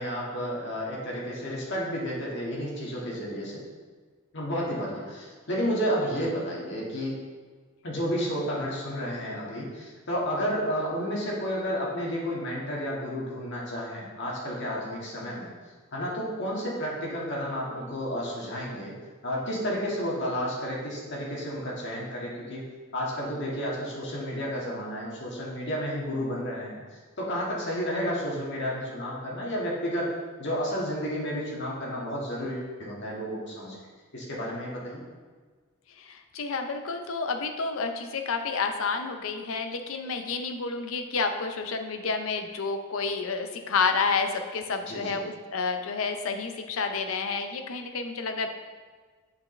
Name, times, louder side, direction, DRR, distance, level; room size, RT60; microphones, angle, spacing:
voice 1, 0.0-3.6 4.3-7.2 7.8-15.5 15.9-18.9 19.2-22.6 22.9-26.8 27.2-33.8 34.1-35.0 44.8-45.2, equal, 55° left, -4 dB, 1.6 m, -31 dB
voice 2, 36.0-48.5, left 4 dB, 75° left, 6 dB, 0.6 m, -30 dB
8.3 x 4.8 x 3.2 m, 1.5 s
head